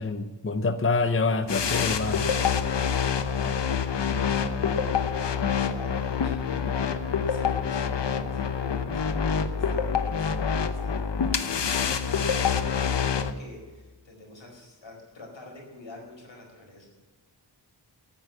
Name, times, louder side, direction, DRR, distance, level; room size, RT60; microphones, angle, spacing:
voice 1, 0.0-2.3, left 3 dB, 30° left, 10 dB, 0.8 m, -26 dB
sound 1, 1.5-13.3, left 7 dB, 70° left, 0.9 m, -26 dB
voice 2, 3.4-11.0 11.3-11.8 12.5-16.9, left 2 dB, 90° left, -1 dB, 4.7 m, -46 dB
9.6 x 9.1 x 9.3 m, 1.3 s
wide cardioid pair, 75°, 44 cm